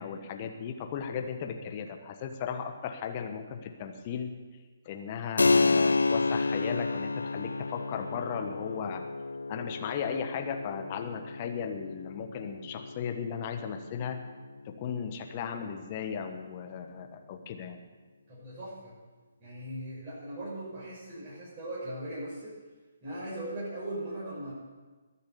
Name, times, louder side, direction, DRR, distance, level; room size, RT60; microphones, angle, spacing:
voice 1, 0.0-4.3 4.8-9.0 9.5-14.2 14.6-17.8, left 7 dB, 30° left, 6 dB, 1.2 m, -36 dB
Keyboard (musical), 5.4-15.6, left 3 dB, 70° left, 0.4 m, -31 dB
voice 2, 18.3-18.9 19.4-22.5 23.0-24.5, right 1 dB, 25° right, -9 dB, 6.5 m, -39 dB
21.5 x 7.4 x 7.0 m, 1.3 s
figure-of-eight pair, 135°, 0 cm